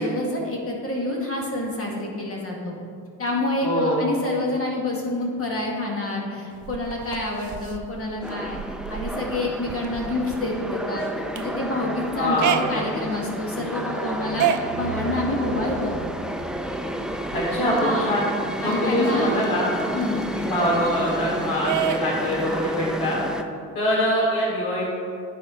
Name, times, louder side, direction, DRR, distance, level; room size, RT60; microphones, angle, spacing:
voice 1, 0.0-2.7 3.2-8.6 8.9-11.1 11.3-16.0 17.8-18.2 18.6-19.4 19.9-20.3, left 2 dB, 40° left, -2 dB, 2.0 m, -27 dB
voice 2, 3.6-4.0 12.1-12.8 17.3-18.3 18.6-19.7 20.4-23.2 23.7-24.9, equal, 70° left, -8 dB, 2.3 m, -24 dB
sound 1, 6.5-18.0 18.4-18.5 18.7-21.2 21.6-23.1, right 8 dB, 55° right, 0.5 m, -32 dB
sound 2, 8.2-23.4, right 1 dB, ahead, 0.5 m, -31 dB
9.4 x 4.5 x 5.7 m, 2.3 s
cardioid pair, 85°, 36 cm